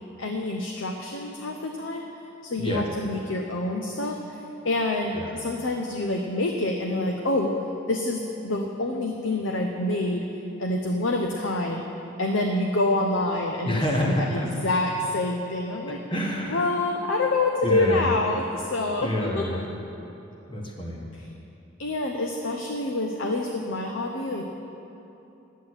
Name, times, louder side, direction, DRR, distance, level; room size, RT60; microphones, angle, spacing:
voice 1, 0.2-2.0 2.4-4.4 4.6-7.5 7.9-10.2 10.6-11.9 12.2-16.0 16.5-19.6 21.8-24.4, left 2 dB, 75° left, 2 dB, 0.8 m, -27 dB
voice 2, 2.6-2.9 5.1-5.3 13.6-14.7 16.1-16.7 17.6-18.1 19.0-19.7 20.5-21.0, equal, 25° left, -1 dB, 1.5 m, -27 dB
11.0 x 8.2 x 8.0 m, 2.9 s
head